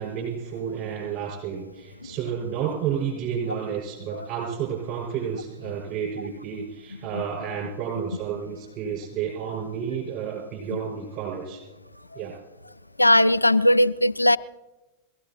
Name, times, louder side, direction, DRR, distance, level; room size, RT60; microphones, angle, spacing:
voice 1, 0.0-11.6 12.1-12.3, right 8 dB, 40° right, -4 dB, 6.3 m, -31 dB
voice 2, 13.0-14.4, left 1 dB, 85° left, 13 dB, 0.4 m, -18 dB
22.5 x 16.0 x 3.1 m, 1.1 s
figure-of-eight pair, 90°, 0 cm